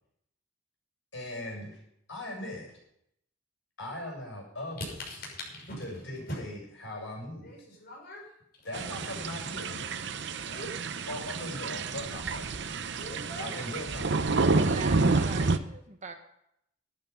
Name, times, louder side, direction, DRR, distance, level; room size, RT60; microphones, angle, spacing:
voice 1, 1.1-1.8 2.1-2.8 3.8-4.9 5.8-7.5 8.6-10.0 11.1-12.7 13.4-15.1, left 1 dB, 70° left, -1 dB, 7.3 m, -40 dB
voice 2, 5.0-5.8 6.3-6.4 7.4-8.3 10.5-10.8 12.6-13.6, equal, 50° left, -2 dB, 6.3 m, -42 dB
sound 1, 8.7-15.6, right 3 dB, 60° right, 0.7 m, -29 dB
voice 3, 14.5-16.1, right 3 dB, 35° right, 6 dB, 1.3 m, -41 dB
12.5 x 11.5 x 5.5 m, 0.75 s
head